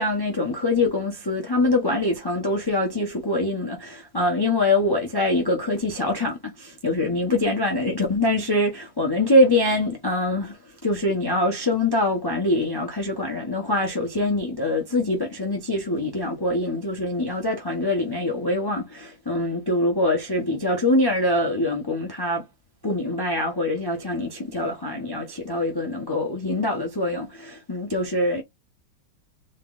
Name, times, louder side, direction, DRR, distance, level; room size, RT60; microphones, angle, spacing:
voice 1, 0.0-10.6 10.8-22.4 22.8-28.4, left 1 dB, 35° left, 0.4 m, -24 dB
4.1 x 3.8 x 2.5 m
omnidirectional pair, 2.2 m